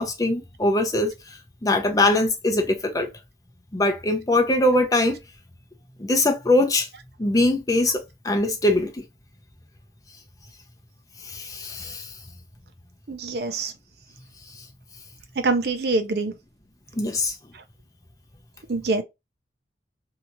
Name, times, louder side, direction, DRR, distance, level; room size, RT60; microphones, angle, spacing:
voice 1, 0.0-3.1 3.7-5.2 6.0-6.9 7.2-9.0 11.2-12.1 16.9-17.3, left 2 dB, 20° left, 0.5 m, -22 dB
voice 2, 13.1-13.7 15.4-16.3 18.7-19.0, right 3 dB, 60° right, 0.5 m, -24 dB
2.8 x 2.4 x 2.8 m
head